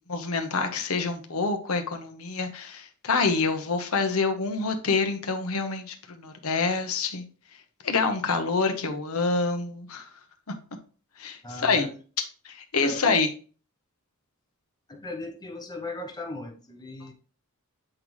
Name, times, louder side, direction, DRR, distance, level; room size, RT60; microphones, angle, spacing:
voice 1, 0.1-7.2 7.8-10.1 11.2-11.9 12.4-13.3, left 4 dB, 75° left, 0.9 m, -27 dB
voice 2, 11.4-11.9 12.8-13.2 14.9-17.1, left 2 dB, 20° left, 0.8 m, -37 dB
7.6 x 3.9 x 3.1 m
head